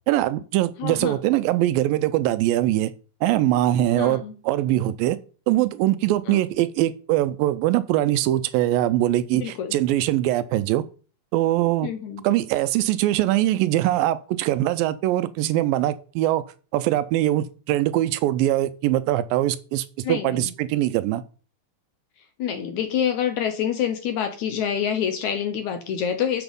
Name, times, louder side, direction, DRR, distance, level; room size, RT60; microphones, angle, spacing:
voice 1, 0.1-2.9 3.2-5.2 5.5-10.8 11.3-11.9 12.2-16.4 16.7-21.2, right 14 dB, 80° right, 2.2 m, -22 dB
voice 2, 0.8-1.2 3.9-4.3 6.3-6.4 9.3-9.8 11.8-12.2 20.0-20.5 22.4-26.4, left 8 dB, 70° left, 2.0 m, -27 dB
8.1 x 6.9 x 5.2 m
omnidirectional pair, 4.2 m